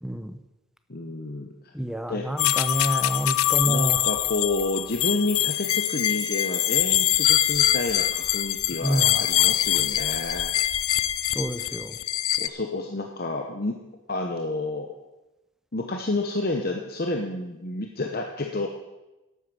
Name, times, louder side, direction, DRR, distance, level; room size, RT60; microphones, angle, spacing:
voice 1, 0.0-0.4 1.7-4.0 8.8-9.2 11.3-12.0, right 1 dB, ahead, 9 dB, 0.7 m, -28 dB
voice 2, 0.9-1.5 2.1-2.3 3.6-10.5 12.4-13.8 14.1-14.9 15.7-18.7, left 2 dB, 45° left, 3 dB, 1.0 m, -29 dB
sound 1, 2.4-12.5, left 13 dB, 90° left, 0.5 m, -24 dB
11.5 x 8.3 x 7.5 m, 1.0 s
head